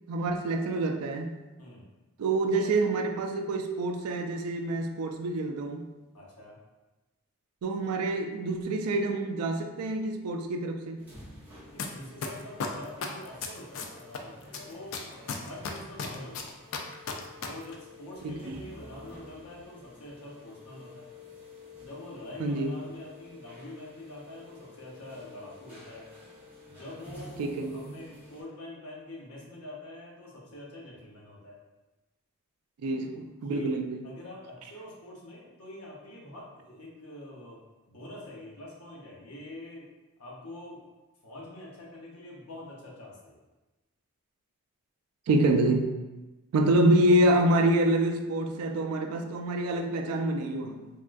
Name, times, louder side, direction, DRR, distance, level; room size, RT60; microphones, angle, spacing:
voice 1, 0.1-1.4 2.2-5.9 7.6-11.1 18.2-18.6 22.4-22.7 27.4-27.9 32.8-34.0 45.3-45.9 46.5-50.8, right 1 dB, 85° right, 5 dB, 0.3 m, -27 dB
voice 2, 6.1-6.6 11.7-16.5 17.4-21.1 21.8-26.1 26.6-31.6 33.4-33.7 34.0-37.6 37.9-39.9 40.2-40.9 41.2-43.4, left 1 dB, 75° left, -4 dB, 0.8 m, -45 dB
sound 1, 11.0-28.4, left 2 dB, 5° right, 0.6 m, -51 dB
sound 2, 11.8-11.9 12.2-14.2 14.5-17.5 17.7-17.8, left 6 dB, 60° left, 0.3 m, -33 dB
3.5 x 2.2 x 2.5 m, 1.1 s
head